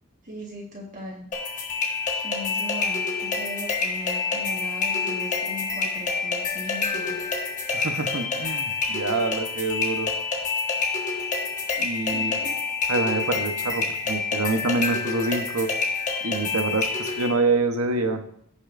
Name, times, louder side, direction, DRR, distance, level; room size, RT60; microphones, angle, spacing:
voice 1, 0.2-1.3 2.1-7.2 12.0-12.6, equal, 40° right, -3 dB, 1.5 m, -38 dB
sound 1, 1.3-17.3, left 4 dB, 35° left, 1.5 m, -27 dB
voice 2, 7.7-10.1 11.8-12.3 12.9-15.7 16.2-18.2, right 3 dB, 80° right, 6 dB, 1.1 m, -26 dB
16.5 x 5.6 x 2.6 m, 0.67 s
head